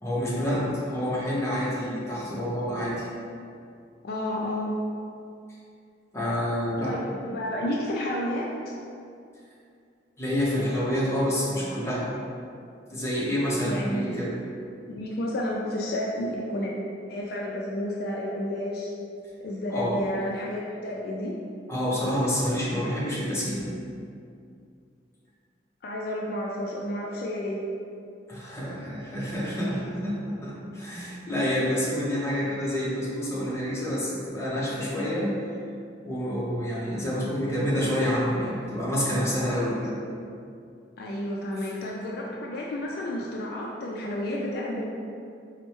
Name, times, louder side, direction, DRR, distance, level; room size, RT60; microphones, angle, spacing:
voice 1, 0.0-3.1 6.1-6.9 10.2-12.1 12.9-14.3 19.7-20.0 21.7-23.7 28.3-35.3 36.0-40.0 41.6-41.7, equal, 15° left, -8 dB, 0.8 m, -28 dB
voice 2, 4.0-4.8 6.8-8.8 13.6-14.2 14.9-16.7 17.1-18.9 19.4-21.3 25.8-27.6 41.0-44.8, left 1 dB, 60° left, -2 dB, 0.3 m, -31 dB
4.2 x 2.1 x 3.0 m, 2.4 s
head